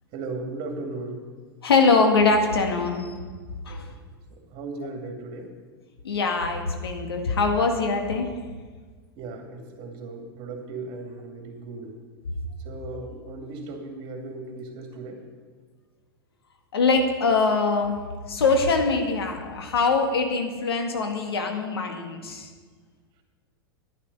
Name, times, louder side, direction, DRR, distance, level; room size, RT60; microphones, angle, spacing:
voice 1, 0.1-1.3 4.3-5.5 9.2-11.9 12.6-15.2, right 3 dB, 40° right, 3 dB, 2.5 m, -36 dB
voice 2, 1.6-3.2 3.7-3.9 6.0-8.3 16.7-18.0 18.3-22.5, left 4 dB, 75° left, 4 dB, 1.9 m, -23 dB
11.0 x 10.5 x 5.5 m, 1.5 s
hypercardioid pair, 100°, 13 cm